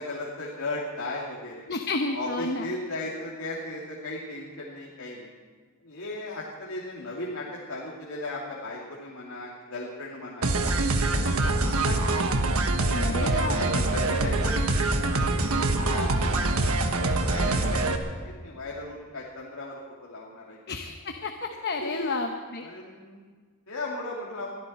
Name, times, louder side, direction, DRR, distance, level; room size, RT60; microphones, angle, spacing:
voice 1, 0.0-1.7 2.1-5.3 5.8-12.2 12.8-20.6 21.8-22.1 22.6-23.2 23.7-24.5, left 2 dB, 80° left, -4 dB, 2.7 m, -37 dB
voice 2, 1.7-2.7 12.9-13.6 20.7-22.6, left 3 dB, 50° left, 4 dB, 1.0 m, -31 dB
sound 1, 10.4-18.0, right 2 dB, 85° right, 1.3 m, -24 dB
23.0 x 14.0 x 4.3 m, 1.5 s
head